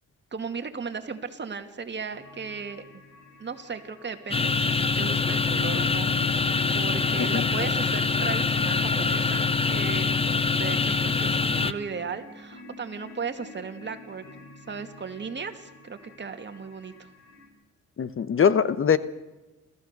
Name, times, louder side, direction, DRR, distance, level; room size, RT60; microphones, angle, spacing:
voice 1, 0.3-3.0 3.4-14.2 14.7-17.1, right 5 dB, 35° right, 7 dB, 2.2 m, -36 dB
sound 1, 2.1-17.5, left 2 dB, 75° left, 6.9 m, -49 dB
sound 2, 4.3-11.7, left 4 dB, 20° left, 1.0 m, -24 dB
voice 2, 18.0-19.0, left 7 dB, 45° left, 15 dB, 1.0 m, -22 dB
29.0 x 14.5 x 6.7 m, 1.1 s
cardioid pair, 90°, 30 cm